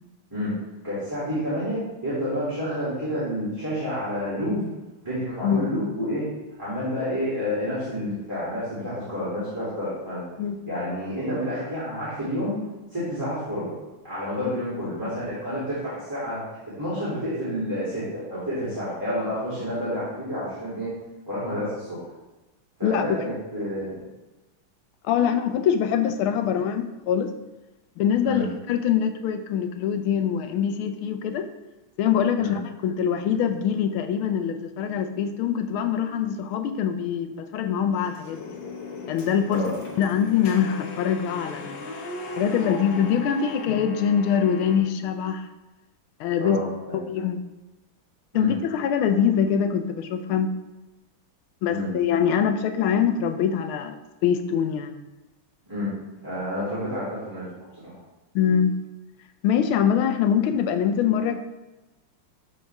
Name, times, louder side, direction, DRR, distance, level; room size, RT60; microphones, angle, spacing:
voice 1, 0.8-4.6 5.0-6.3 6.6-10.2 10.7-12.6 12.9-13.7 14.0-16.4 16.8-20.9 21.3-22.0 22.8-23.9 28.2-28.5 32.4-32.6 39.5-39.7 46.4-47.0 48.3-48.5 51.7-51.9 55.7-55.9 56.2-57.4 57.8-58.0, equal, 10° right, -11 dB, 2.5 m, -29 dB
voice 2, 22.8-23.2 23.6-23.7 25.0-27.3 28.0-31.5 32.0-38.4 39.1-39.6 40.0-41.8 42.4-45.5 46.2-46.6 46.9-47.4 48.3-50.5 51.6-55.0 58.3-58.8 59.4-61.4, left 8 dB, 75° left, 8 dB, 1.5 m, -24 dB
sound 1, 37.9-44.8, left 2 dB, 60° left, 1.6 m, -37 dB
12.0 x 4.2 x 3.4 m, 1.1 s
omnidirectional pair, 2.4 m